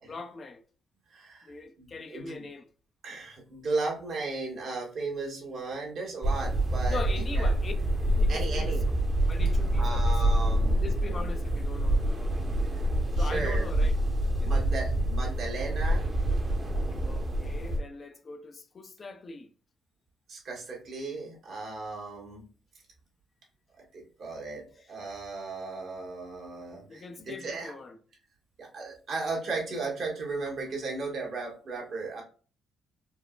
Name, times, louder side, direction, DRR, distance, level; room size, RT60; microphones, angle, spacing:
voice 1, 0.1-0.6 1.5-2.7 6.9-7.7 8.1-8.8 9.3-10.4 10.8-12.5 13.2-13.9 14.3-14.5 17.1-19.5 26.9-28.0, left 4 dB, 40° left, 0.5 m, -41 dB
voice 2, 1.1-1.5 1.8-2.5 3.0-7.0 7.3-7.5 8.3-8.8 9.7-10.9 12.7-12.8 13.2-13.6 14.4-16.1 20.3-22.5 23.9-27.7 28.6-32.2, right 3 dB, 65° right, 1.4 m, -36 dB
sound 1, 6.2-17.8, right 1 dB, 30° right, 0.8 m, -26 dB
4.4 x 2.0 x 2.3 m
cardioid pair, 90°, 0 cm